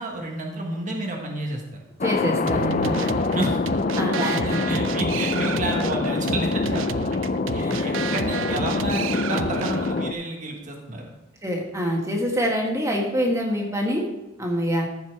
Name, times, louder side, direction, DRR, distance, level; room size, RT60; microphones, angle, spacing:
voice 1, 0.0-1.8 3.3-3.6 4.0-7.2 7.5-11.1, right 2 dB, 35° right, 1 dB, 1.5 m, -30 dB
Thunder, 2.0-10.1, left 3 dB, 40° left, 0.4 m, -25 dB
voice 2, 2.0-3.2 4.0-4.5 7.6-7.9 11.4-14.1 14.4-14.9, equal, 15° right, 0 dB, 1.8 m, -25 dB
sound 1, 2.5-10.1, right 7 dB, 65° right, 0.4 m, -33 dB
14.5 x 5.5 x 4.7 m, 1.0 s
head